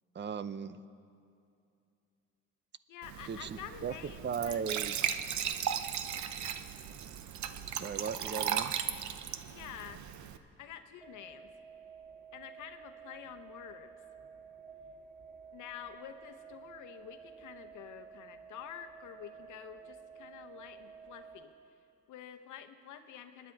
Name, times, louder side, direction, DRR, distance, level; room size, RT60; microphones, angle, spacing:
voice 1, 0.1-0.8 3.3-3.9 4.2-5.0 7.7-8.7, right 7 dB, 35° right, 14 dB, 0.6 m, -37 dB
voice 2, 2.9-4.6 8.2-8.4 9.5-10.1 10.6-11.5 12.3-13.9 15.5-21.5 22.1-23.5, left 10 dB, 80° left, 8 dB, 1.0 m, -48 dB
Glass / Trickle dribble / Fill (with liquid), 3.0-10.4, right 9 dB, 70° right, 0.8 m, -37 dB
sound 1, 11.0-21.4, right 6 dB, 5° left, 2.0 m, -52 dB
25.0 x 10.5 x 4.7 m, 2.5 s
cardioid pair, 90°, 30 cm